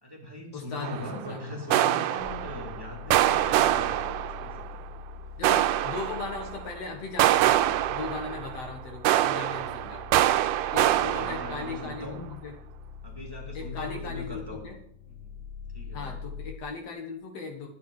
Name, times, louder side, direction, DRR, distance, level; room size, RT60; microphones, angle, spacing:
voice 1, 0.0-4.8 10.8-12.3 13.0-14.6 15.1-15.4 15.7-16.1, left 1 dB, 10° right, -1 dB, 2.2 m, -40 dB
voice 2, 0.5-1.6 5.4-10.0 10.7-12.5 13.5-14.7 15.9-17.7, left 4 dB, 60° left, 2 dB, 2.2 m, -38 dB
sound 1, 0.8-1.3 1.7-2.8 3.1-4.7 5.4-6.6 7.2-8.7 9.0-11.9, right 13 dB, 90° right, 2.1 m, -25 dB
sound 2, 2.2-16.5, left 5 dB, 75° left, 4.7 m, -43 dB
11.5 x 9.7 x 4.8 m, 0.70 s
omnidirectional pair, 3.5 m